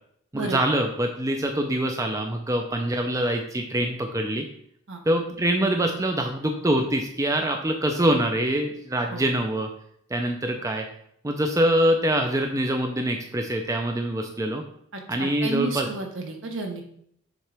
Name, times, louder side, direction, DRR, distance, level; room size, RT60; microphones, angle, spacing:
voice 1, 0.3-4.4 5.1-9.7 10.1-10.8 11.2-14.6 15.1-15.9, right 1 dB, 15° right, 3 dB, 0.5 m, -24 dB
voice 2, 14.9-16.8, right 2 dB, 65° right, 3 dB, 1.1 m, -31 dB
7.3 x 3.7 x 3.4 m, 0.68 s
head